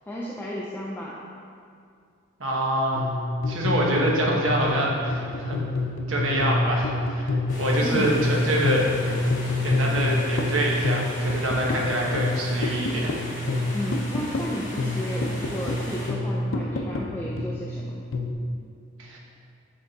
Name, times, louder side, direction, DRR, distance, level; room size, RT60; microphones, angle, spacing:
voice 1, 0.1-1.2 4.0-4.2 7.8-8.3 13.7-18.0, equal, 10° left, -5 dB, 0.4 m, -33 dB
voice 2, 2.4-3.1 3.5-5.6 6.1-7.3 7.6-8.8 9.6-13.1 19.0-19.2, right 1 dB, 90° right, -2 dB, 1.1 m, -25 dB
sound 1, 2.9-18.3, left 2 dB, 75° left, 0.5 m, -27 dB
sound 2, 7.5-16.1, left 1 dB, 40° left, 1.5 m, -38 dB
7.7 x 3.6 x 4.0 m, 2.3 s
head